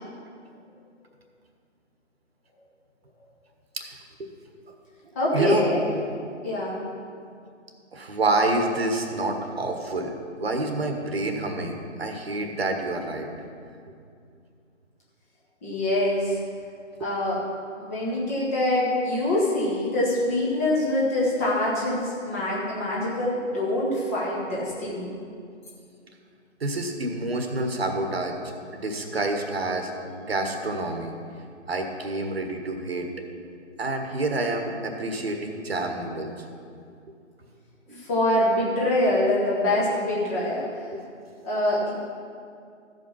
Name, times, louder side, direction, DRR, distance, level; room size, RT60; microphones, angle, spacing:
voice 1, 3.7-4.3 5.3-5.6 7.9-13.3 17.0-17.1 26.6-28.4 28.7-29.9 30.2-31.1 31.7-33.1 33.8-36.3 37.9-38.0 40.9-41.0, right 2 dB, 55° right, 4 dB, 1.4 m, -28 dB
voice 2, 5.1-5.8 6.4-6.8 15.6-16.4 17.0-17.4 17.8-25.1 38.0-40.7 41.4-41.9, left 1 dB, 10° left, -6 dB, 1.1 m, -24 dB
14.5 x 5.4 x 5.6 m, 2.4 s
figure-of-eight pair, 155°, 37 cm